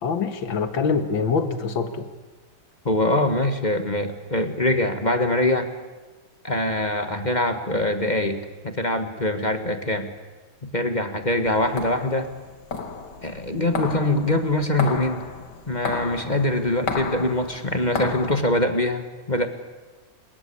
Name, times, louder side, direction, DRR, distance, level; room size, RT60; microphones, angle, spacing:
voice 1, 0.0-2.1, left 5 dB, 80° left, 9 dB, 2.4 m, -24 dB
voice 2, 2.8-5.7 6.4-10.1 10.6-12.3 13.2-15.3 15.7-19.5, left 1 dB, 25° left, 8 dB, 1.6 m, -23 dB
sound 1, 11.5-18.4, left 4 dB, 60° left, 2.5 m, -33 dB
29.5 x 18.5 x 8.6 m, 1.3 s
omnidirectional pair, 2.1 m